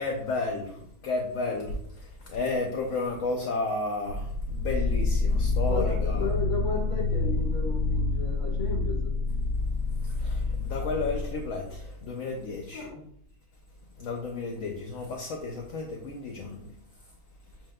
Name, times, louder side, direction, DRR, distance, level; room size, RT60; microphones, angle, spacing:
voice 1, 0.0-6.3 10.1-12.9 14.0-16.7, left 3 dB, 65° left, 1 dB, 1.0 m, -32 dB
sound 1, 4.1-11.9, left 3 dB, 90° left, 1.1 m, -28 dB
voice 2, 5.7-9.1 12.7-13.0, left 4 dB, 35° left, -1 dB, 1.4 m, -34 dB
7.3 x 2.8 x 2.2 m, 0.66 s
omnidirectional pair, 1.6 m